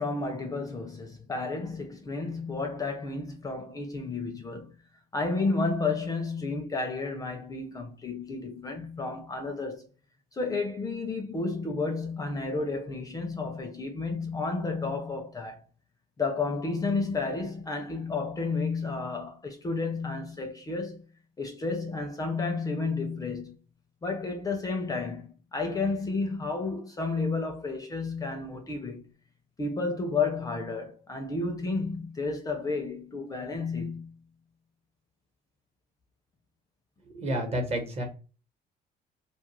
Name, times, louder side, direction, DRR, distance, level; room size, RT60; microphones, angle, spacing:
voice 1, 0.0-4.7 5.1-9.8 10.3-15.6 16.2-21.0 21.4-23.6 24.0-29.0 29.6-34.1, left 3 dB, 20° left, 0.5 m, -31 dB
voice 2, 37.1-38.0, right 1 dB, 40° right, 1.0 m, -30 dB
2.3 x 2.1 x 3.0 m
cardioid pair, 110°, 17 cm